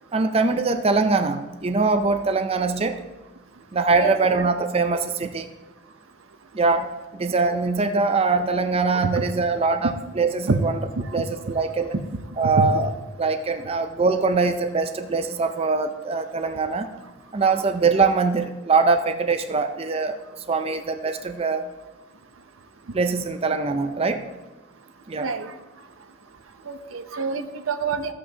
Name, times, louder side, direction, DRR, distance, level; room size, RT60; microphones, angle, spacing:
voice 1, 0.1-3.0 3.7-5.5 6.5-6.9 7.1-10.8 11.1-11.9 12.4-12.9 13.2-16.9 17.3-21.7 22.9-24.2 25.1-25.3, right 4 dB, 30° right, 8 dB, 0.4 m, -22 dB
voice 2, 12.4-12.9 25.2-25.5 26.7-28.1, right 4 dB, 85° right, 9 dB, 0.7 m, -26 dB
14.5 x 8.2 x 2.8 m, 1.1 s
head